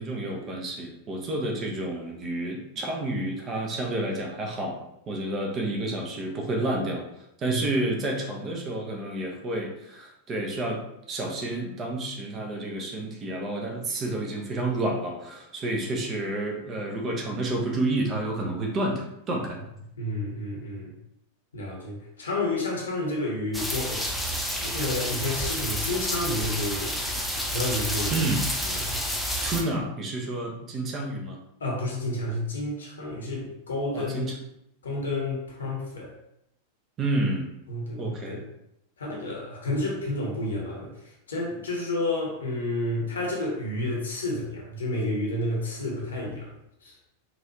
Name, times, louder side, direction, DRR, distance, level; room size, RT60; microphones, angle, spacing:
voice 1, 0.0-7.0 7.4-19.7 28.1-28.4 29.4-31.4 33.9-34.4 37.0-37.5 38.0-38.4, right 2 dB, 30° right, 1 dB, 0.8 m, -30 dB
voice 2, 20.0-20.9 21.5-24.0 24.6-27.0 27.5-28.1 28.6-28.9 31.6-34.3 34.8-36.1 37.7-38.4 39.0-46.5 46.8-47.0, left 2 dB, 70° left, -2 dB, 1.1 m, -30 dB
sound 1, 23.5-29.6, equal, ahead, 0.5 m, -29 dB
4.1 x 2.6 x 2.8 m, 0.80 s
figure-of-eight pair, 90°, 0 cm